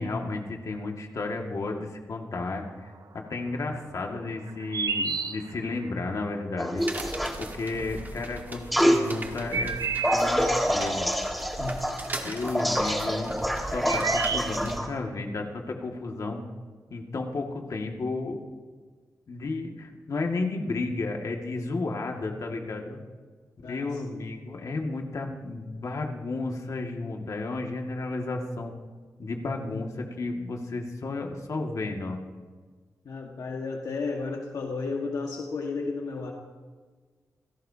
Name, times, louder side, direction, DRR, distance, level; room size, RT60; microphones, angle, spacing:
voice 1, 0.0-6.9 7.4-9.8 10.1-11.1 12.2-16.5 16.9-18.4 19.3-23.0 23.6-28.7 29.2-32.2, left 3 dB, 60° left, 2 dB, 2.0 m, -33 dB
sound 1, 4.5-5.8 7.8-7.9 9.1-10.9 13.3-13.4 13.6-14.9, right 5 dB, 75° right, 0.7 m, -31 dB
sound 2, 6.6-7.4 8.7-9.0 10.0-14.9, equal, ahead, 1.6 m, -26 dB
sound 3, 6.8-14.8, right 2 dB, 30° right, 1.7 m, -40 dB
voice 2, 23.6-24.2 29.4-29.5 33.0-36.3, left 4 dB, 75° left, 0 dB, 1.6 m, -33 dB
28.0 x 17.0 x 2.8 m, 1.5 s
wide cardioid pair, 130°, 6 cm